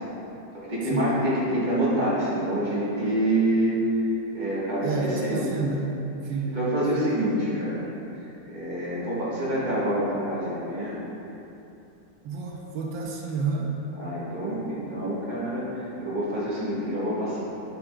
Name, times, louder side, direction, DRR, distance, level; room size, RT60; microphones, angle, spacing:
voice 1, 0.5-3.8 4.3-4.9 5.2-5.5 6.5-7.8 8.5-10.9 13.9-17.5, right 1 dB, 25° right, -9 dB, 1.6 m, -27 dB
voice 2, 4.8-6.0 6.2-7.1 12.2-13.7, right 4 dB, 85° right, -1 dB, 1.4 m, -30 dB
10.5 x 4.7 x 2.4 m, 2.8 s
omnidirectional pair, 2.1 m